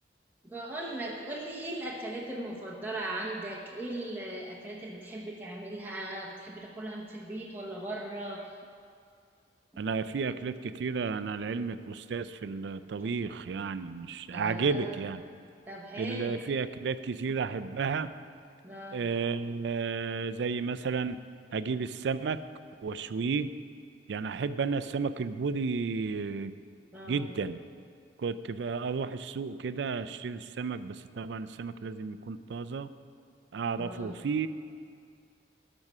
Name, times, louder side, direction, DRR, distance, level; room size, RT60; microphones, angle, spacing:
voice 1, 0.4-8.5 13.0-13.1 14.3-15.1 15.6-16.4 17.3-17.4 18.6-19.1 26.9-27.3 33.8-34.1, right 1 dB, 10° right, -4 dB, 0.8 m, -38 dB
voice 2, 9.8-15.2 16.0-18.1 18.9-21.2 21.5-22.4 22.8-23.5 24.1-26.5 27.1-27.6 28.2-32.9 33.5-34.5, right 5 dB, 70° right, 13 dB, 0.4 m, -32 dB
12.0 x 6.2 x 5.5 m, 2.3 s
head